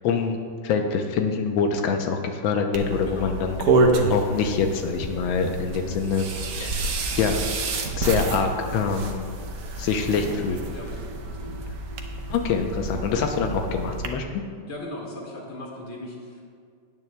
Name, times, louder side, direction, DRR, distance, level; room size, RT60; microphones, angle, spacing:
voice 1, 0.0-3.8 4.1-6.3 6.5-6.9 7.2-7.4 8.0-9.2 9.8-10.6 12.3-14.4, left 5 dB, 90° left, 4 dB, 1.5 m, -25 dB
sound 1, 2.7-14.1, right 2 dB, 60° right, 1.0 m, -28 dB
voice 2, 10.7-11.6 14.7-16.4, left 1 dB, 35° left, -2 dB, 2.0 m, -38 dB
17.0 x 9.1 x 2.2 m, 2.2 s
omnidirectional pair, 2.1 m